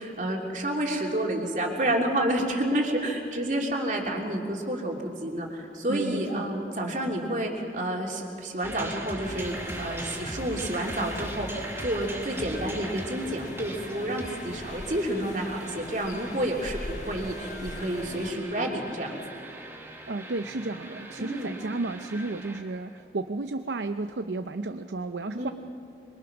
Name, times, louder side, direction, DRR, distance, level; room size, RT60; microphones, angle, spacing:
voice 1, 0.0-19.2 21.2-21.6 25.4-25.5, right 1 dB, 45° right, 0 dB, 3.0 m, -29 dB
voice 2, 5.9-6.5 20.1-25.5, right 3 dB, 85° right, 9 dB, 0.6 m, -33 dB
sound 1, 8.6-23.0, right 1 dB, 15° right, 1.7 m, -40 dB
sound 2, 9.2-18.3, left 2 dB, 40° left, 1.5 m, -42 dB
26.0 x 23.0 x 6.1 m, 2.7 s
head